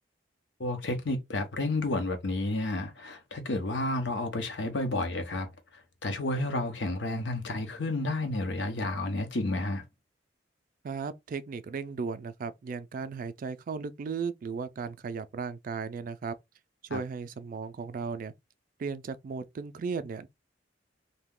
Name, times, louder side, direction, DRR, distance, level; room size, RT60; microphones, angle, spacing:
voice 1, 0.6-5.5 6.0-9.8 16.9-17.0, left 2 dB, 70° left, 0.8 m, -31 dB
voice 2, 10.8-16.3 16.8-18.3 18.8-20.3, right 5 dB, 50° right, 0.3 m, -36 dB
2.7 x 2.2 x 3.6 m
head